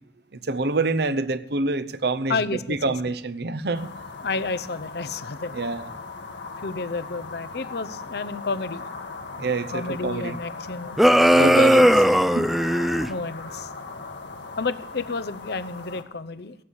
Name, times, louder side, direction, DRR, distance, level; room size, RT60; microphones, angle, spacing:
voice 1, 0.4-3.9 5.5-5.9 9.4-10.4 11.3-12.5, right 3 dB, 65° right, 0.8 m, -26 dB
voice 2, 2.3-2.9 4.2-5.5 6.6-8.8 9.7-11.0 11.8-11.9 13.1-13.7 14.6-16.5, left 4 dB, 65° left, 0.8 m, -30 dB
sound 1, 3.7-16.0, left 3 dB, 85° left, 1.7 m, -38 dB
sound 2, 11.0-13.1, equal, ahead, 0.5 m, -17 dB
17.0 x 8.6 x 6.4 m
head